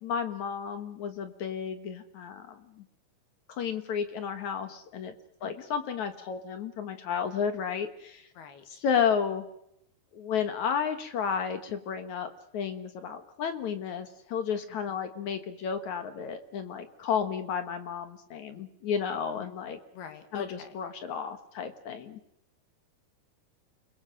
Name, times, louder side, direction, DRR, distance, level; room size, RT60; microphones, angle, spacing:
voice 1, 0.0-2.8 3.5-5.1 5.4-8.3 8.7-9.4 10.1-19.8 20.3-22.2, left 7 dB, 60° left, 8 dB, 2.5 m, -32 dB
voice 2, 19.4-20.7, left 10 dB, 85° left, 7 dB, 4.0 m, -44 dB
29.0 x 22.0 x 6.4 m, 0.78 s
omnidirectional pair, 4.4 m